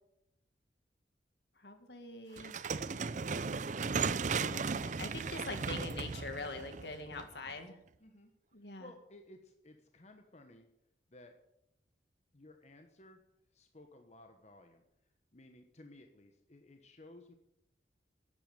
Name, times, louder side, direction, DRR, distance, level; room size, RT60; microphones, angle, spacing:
voice 1, 1.6-2.6 4.3-7.8 8.5-8.9, left 3 dB, 70° left, 7 dB, 2.0 m, -44 dB
sound 1, 2.4-7.5, right 5 dB, 45° right, 0.5 m, -36 dB
voice 2, 7.1-7.7 8.0-8.3 8.6-10.7 11.1-11.3 12.3-13.2 13.5-14.8 15.3-17.3, left 1 dB, 40° left, 5 dB, 1.1 m, -57 dB
11.5 x 9.0 x 8.9 m, 0.82 s
head